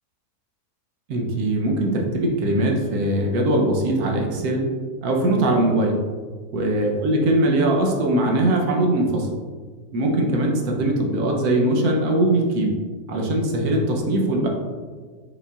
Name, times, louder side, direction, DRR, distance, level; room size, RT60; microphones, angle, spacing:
voice 1, 1.1-4.6 5.0-6.0 6.5-9.3 9.9-12.7 13.1-14.5, right 1 dB, 70° right, 1 dB, 1.2 m, -21 dB
5.5 x 4.0 x 2.4 m, 1.5 s
omnidirectional pair, 1.7 m